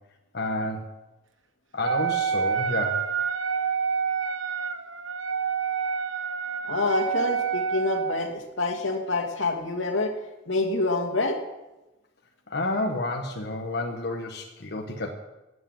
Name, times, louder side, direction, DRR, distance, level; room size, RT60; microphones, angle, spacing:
voice 1, 0.3-0.9 1.7-3.1 12.5-15.1, left 2 dB, 55° left, 2 dB, 1.3 m, -30 dB
Wind instrument woodwind instrument, 1.8-8.3, right 6 dB, 85° right, 1.1 m, -28 dB
voice 2, 6.6-10.1 10.5-11.4, left 2 dB, 85° left, 4 dB, 2.3 m, -27 dB
14.0 x 8.7 x 9.3 m, 1.0 s
head